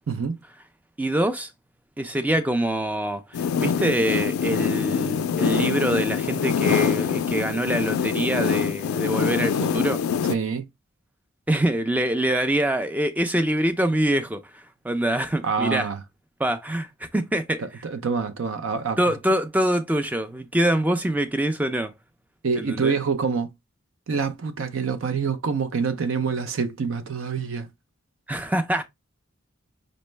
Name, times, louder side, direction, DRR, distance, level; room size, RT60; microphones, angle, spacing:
voice 1, 0.1-0.4 10.3-10.7 15.4-16.0 17.8-19.2 22.4-23.5 24.1-27.7, right 5 dB, 70° right, 0.5 m, -26 dB
voice 2, 1.0-1.5 2.0-10.0 11.5-15.9 16.4-16.9 17.1-17.6 19.0-21.9 22.5-22.9 28.3-28.8, right 1 dB, 10° right, 0.4 m, -24 dB
sound 1, 3.3-10.4, left 7 dB, 90° left, 0.3 m, -24 dB
5.2 x 2.1 x 3.2 m
head